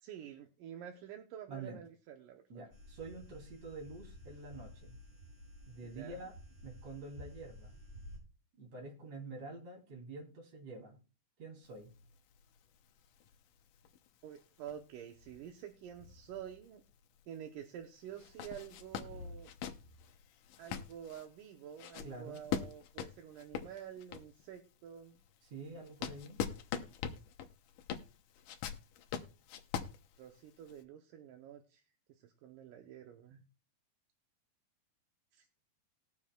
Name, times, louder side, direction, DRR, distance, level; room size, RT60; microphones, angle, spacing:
voice 1, 0.0-2.6 5.8-6.3 14.2-16.8 17.3-19.5 20.6-25.2 30.2-31.8 32.1-33.4 35.3-35.5, right 9 dB, 80° right, 4 dB, 2.4 m, -49 dB
voice 2, 1.5-1.8 2.5-5.0 5.7-6.3 6.6-7.8 8.6-11.0 11.4-11.9 22.0-22.4 25.5-26.4, right 3 dB, 55° right, 0 dB, 4.0 m, -47 dB
sound 1, 2.7-8.2, equal, 20° right, 4.8 m, -53 dB
sound 2, 11.7-17.0 17.3-17.4 18.1-24.5 25.0-30.8, left 8 dB, 75° left, 2.2 m, -43 dB
20.0 x 7.2 x 2.3 m, 0.33 s
omnidirectional pair, 3.8 m